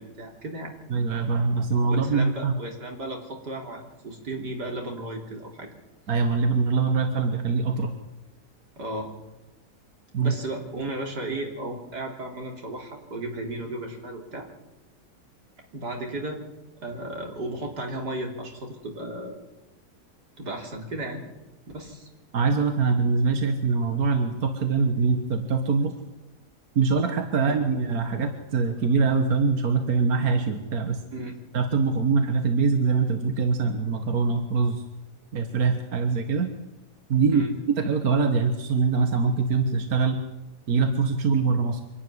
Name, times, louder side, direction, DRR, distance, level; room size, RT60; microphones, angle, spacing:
voice 1, 0.0-0.8 2.0-5.7 8.8-9.1 10.2-14.5 15.7-16.4 16.8-19.4 20.4-21.2 21.7-22.1 27.4-27.6 31.1-31.4 37.3-37.5, right 1 dB, 85° right, 1 dB, 3.9 m, -34 dB
voice 2, 0.9-2.6 6.1-8.0 10.1-10.3 22.3-25.9 26.8-31.0 31.5-34.8 35.3-36.5 37.1-37.4 37.8-40.2 40.7-41.8, right 4 dB, 65° right, 5 dB, 1.9 m, -23 dB
25.0 x 11.5 x 9.7 m, 1.0 s
omnidirectional pair, 1.7 m